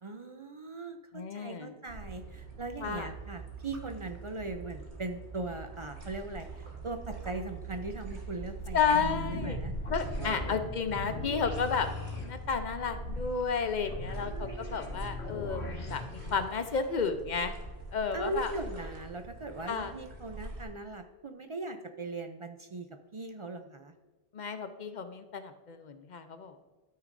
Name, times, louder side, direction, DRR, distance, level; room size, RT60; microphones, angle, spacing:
voice 1, 0.0-9.0 9.3-9.7 10.2-10.6 14.1-14.8 18.1-22.9 23.1-23.9, right 2 dB, 40° right, 6 dB, 0.4 m, -40 dB
voice 2, 1.1-1.7 2.8-3.1 8.7-9.6 9.9-11.9 12.3-17.6 17.9-18.5 19.7-19.9 24.3-26.6, left 5 dB, 50° left, 9 dB, 0.7 m, -32 dB
sound 1, 1.9-20.6, right 2 dB, 85° right, 2.0 m, -43 dB
sound 2, 8.9-16.3, left 2 dB, 75° left, 1.9 m, -40 dB
13.0 x 6.2 x 2.6 m, 1.2 s
omnidirectional pair, 1.1 m